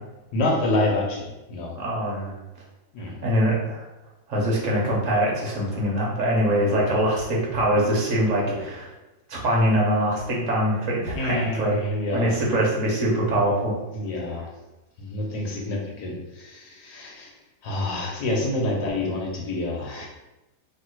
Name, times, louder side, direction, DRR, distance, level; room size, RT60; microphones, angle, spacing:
voice 1, 0.3-1.7 2.9-3.2 6.7-6.9 8.5-8.6 11.1-12.4 13.9-14.5 15.0-17.3 17.6-20.1, left 2 dB, 85° left, -1 dB, 1.6 m, -27 dB
voice 2, 1.7-2.4 3.2-3.8 4.3-8.9 9.3-11.7 12.1-13.8, right 1 dB, 55° right, -3 dB, 1.4 m, -23 dB
3.4 x 2.8 x 4.6 m, 1.0 s
omnidirectional pair, 1.7 m